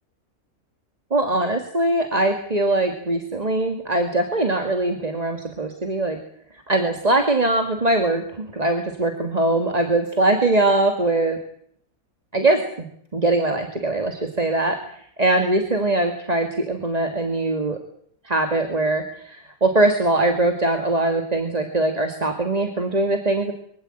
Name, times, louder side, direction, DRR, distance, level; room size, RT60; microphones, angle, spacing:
voice 1, 1.1-6.2 6.7-11.4 12.3-12.9 13.1-17.8 18.2-23.5, right 2 dB, 25° right, 5 dB, 2.0 m, -22 dB
23.5 x 15.5 x 8.9 m, 0.67 s
omnidirectional pair, 1.6 m